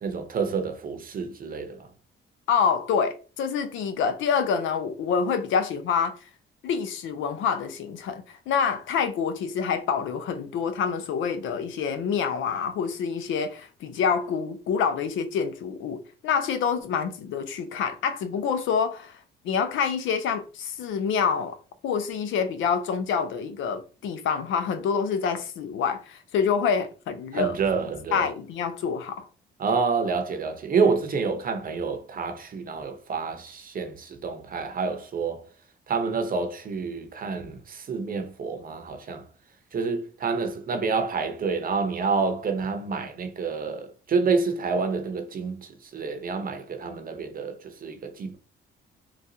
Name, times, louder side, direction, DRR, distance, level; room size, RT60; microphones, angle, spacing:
voice 1, 0.0-1.9 27.3-28.3 29.6-35.4 35.9-39.2 39.7-48.4, right 5 dB, 45° right, 0.8 m, -28 dB
voice 2, 2.5-6.2 6.6-19.2 19.4-21.6 21.8-27.6 28.1-29.3, left 6 dB, 80° left, 0.6 m, -27 dB
3.9 x 2.4 x 2.7 m
cardioid pair, 90°, 20 cm